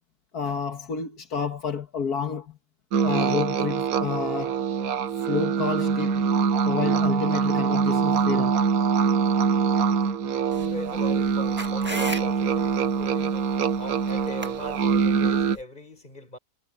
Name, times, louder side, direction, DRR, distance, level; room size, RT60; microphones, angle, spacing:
voice 1, 0.3-2.5 3.0-4.6 5.2-6.2 6.7-8.6, left 6 dB, 75° left, 2.1 m, -30 dB
sound 1, 2.9-15.6, right 6 dB, 70° right, 1.4 m, -24 dB
sound 2, 10.5-15.6, right 1 dB, 5° right, 1.7 m, -39 dB
voice 2, 10.6-13.5 13.8-16.4, left 2 dB, 30° left, 5.7 m, -39 dB
omnidirectional pair, 1.6 m